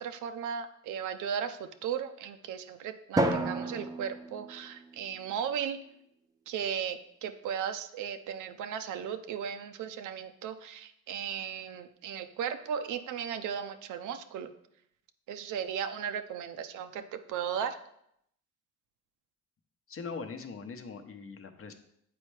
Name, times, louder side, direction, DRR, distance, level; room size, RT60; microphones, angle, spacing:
voice 1, 0.0-5.8 6.5-14.5 15.3-17.8, right 8 dB, 80° right, 9 dB, 0.6 m, -36 dB
Drum, 3.2-5.5, right 1 dB, 10° right, 0.5 m, -32 dB
voice 2, 19.9-21.7, left 5 dB, 45° left, 6 dB, 0.8 m, -41 dB
7.7 x 4.3 x 3.2 m, 0.74 s
cardioid pair, 90°, 30 cm